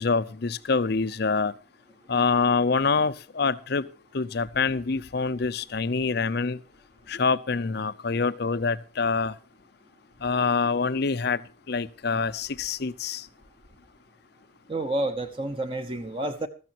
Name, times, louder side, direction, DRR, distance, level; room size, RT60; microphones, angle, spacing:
voice 1, 0.0-1.5 2.1-3.8 4.1-6.6 7.1-9.3 10.2-11.4 11.7-13.2, left 4 dB, 55° left, 0.6 m, -25 dB
voice 2, 14.7-16.5, right 1 dB, 25° right, 0.8 m, -29 dB
15.0 x 13.5 x 2.9 m
head